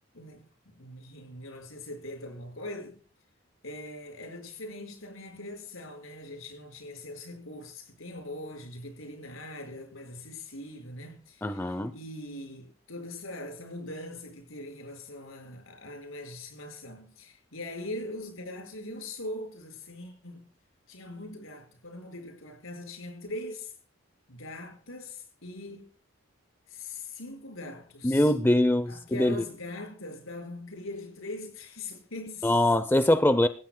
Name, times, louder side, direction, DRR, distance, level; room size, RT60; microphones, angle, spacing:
voice 1, 0.1-3.0 3.6-20.5 20.9-23.7 24.3-25.9 26.7-28.3 28.9-32.6, left 1 dB, 80° left, 5.6 m, -41 dB
voice 2, 11.4-11.9 28.0-29.4 32.4-33.5, left 1 dB, 10° left, 0.6 m, -23 dB
26.5 x 15.0 x 2.2 m
head